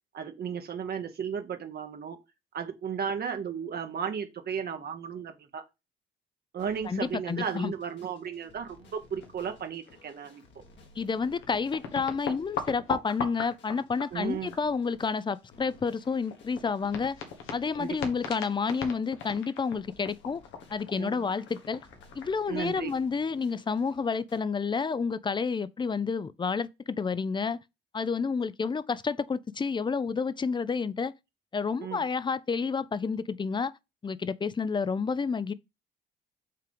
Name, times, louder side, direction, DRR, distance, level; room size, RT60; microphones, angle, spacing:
voice 1, 0.1-2.2 2.5-5.6 6.5-10.4 14.1-14.5 17.8-18.0 21.0-21.2 22.5-22.9 31.8-32.0, right 7 dB, 50° right, 0.9 m, -34 dB
sound 1, 6.6-24.4, left 3 dB, 65° left, 1.8 m, -57 dB
voice 2, 6.8-7.7 11.0-17.2 17.5-20.4 20.7-21.8 22.1-27.6 27.9-31.1 31.5-33.7 34.0-35.5, left 5 dB, 25° left, 0.5 m, -30 dB
sound 2, 9.2-9.6 9.9-10.0 10.9-11.0 11.1-14.9 15.3-23.0, left 6 dB, 90° left, 1.3 m, -38 dB
5.7 x 3.7 x 5.2 m
cardioid pair, 90°, 20 cm